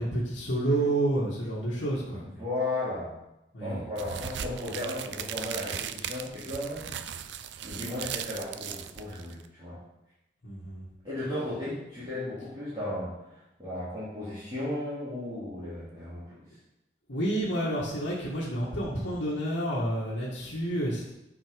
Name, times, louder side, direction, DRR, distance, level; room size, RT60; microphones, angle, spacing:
voice 1, 0.0-2.3 3.5-3.8 10.4-10.9 17.1-21.1, right 1 dB, 85° left, -8 dB, 2.0 m, -29 dB
voice 2, 2.2-3.1 3.6-7.0 7.6-9.8 11.0-13.1 13.6-16.2, left 1 dB, 25° right, -13 dB, 3.2 m, -35 dB
sound 1, 4.0-9.5, right 8 dB, 70° right, 0.5 m, -38 dB
9.3 x 5.0 x 5.3 m, 0.90 s
head